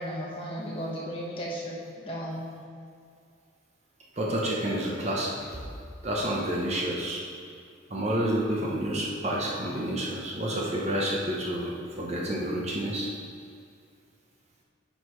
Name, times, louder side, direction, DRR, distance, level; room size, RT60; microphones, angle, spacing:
voice 1, 0.0-2.5, equal, 25° left, -5 dB, 1.3 m, -35 dB
voice 2, 4.2-5.6 6.0-7.2 7.9-13.1, right 1 dB, 35° right, -4 dB, 1.0 m, -29 dB
9.5 x 5.7 x 3.2 m, 2.3 s
head